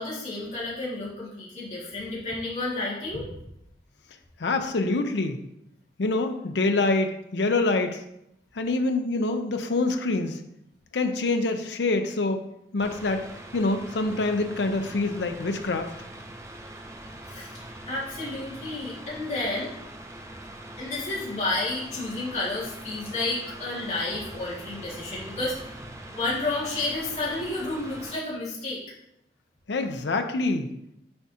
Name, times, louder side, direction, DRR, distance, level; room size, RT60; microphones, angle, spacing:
voice 1, 0.0-3.3 17.3-19.7 20.8-25.6 26.1-28.8, left 2 dB, 40° left, -8 dB, 2.0 m, -31 dB
voice 2, 4.4-5.4 6.0-8.0 8.6-10.4 10.9-12.4 12.7-13.2 13.5-15.9 29.7-30.7, left 3 dB, 70° left, 6 dB, 0.6 m, -25 dB
Mechanical fan, 12.8-28.1, right 1 dB, 15° right, 0.6 m, -43 dB
7.7 x 4.7 x 2.8 m, 0.80 s
head